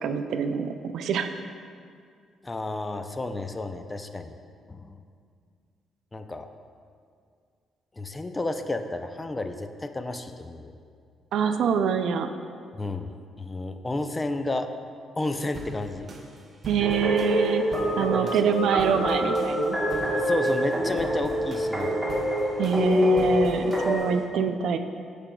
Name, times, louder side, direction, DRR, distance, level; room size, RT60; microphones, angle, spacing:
voice 1, 0.0-1.3 11.3-12.3 16.7-17.6 18.0-19.8 22.6-24.8, right 6 dB, 75° right, 8 dB, 0.4 m, -25 dB
voice 2, 2.4-4.3 4.7-5.0 6.1-6.5 8.0-10.7 12.7-14.7 15.2-16.1 18.0-18.4 20.1-21.9, left 2 dB, 20° left, 7 dB, 0.4 m, -32 dB
sound 1, 15.5-24.2, right 2 dB, 40° right, 0.9 m, -43 dB
sound 2, 16.8-24.0, equal, 5° right, 1.2 m, -26 dB
13.0 x 5.0 x 2.3 m, 2.2 s
cardioid pair, 90°, 0 cm